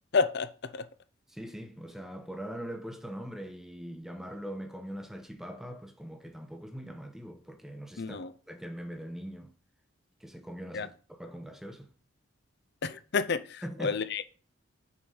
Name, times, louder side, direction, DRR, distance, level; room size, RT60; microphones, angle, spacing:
voice 1, 0.1-0.8 8.0-8.3 10.7-10.9 12.8-14.4, left 5 dB, 55° left, 0.6 m, -30 dB
voice 2, 1.3-9.5 10.2-11.9 13.6-14.0, equal, ahead, 0.8 m, -42 dB
7.3 x 5.2 x 5.4 m
head